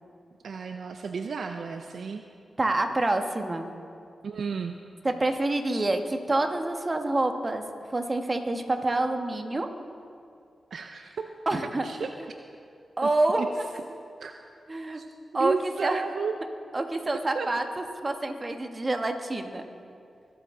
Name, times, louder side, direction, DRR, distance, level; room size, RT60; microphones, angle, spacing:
voice 1, 0.4-2.2 4.2-4.8 10.7-11.3 11.8-12.1 13.0-13.1 13.4-13.5 14.2-14.4 14.9-15.1 15.4-16.3 17.3-17.5, right 5 dB, 75° right, 5 dB, 0.5 m, -32 dB
voice 2, 2.6-3.6 5.0-7.6 7.9-9.7 11.5-11.8 13.0-13.7 14.7-15.0 15.3-16.0 16.7-19.6, right 2 dB, 35° right, 5 dB, 1.3 m, -27 dB
21.0 x 8.2 x 3.7 m, 2.4 s
supercardioid pair, 40°, 0 cm